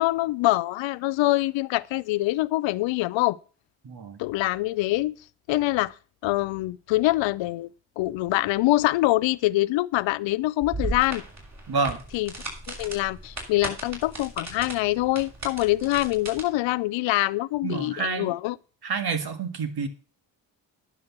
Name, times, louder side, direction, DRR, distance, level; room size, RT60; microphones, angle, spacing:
voice 1, 0.0-3.4 4.2-5.2 5.5-5.9 6.2-7.7 8.0-11.2 12.1-12.3 12.7-18.6, left 18 dB, 75° left, 0.7 m, -24 dB
voice 2, 3.8-4.2 11.7-12.0 17.6-18.4 18.8-19.9, right 4 dB, 55° right, 2.1 m, -28 dB
sound 1, 10.6-16.4, right 2 dB, 35° right, 6.4 m, -36 dB
11.0 x 6.3 x 7.3 m
supercardioid pair, 55°, 45 cm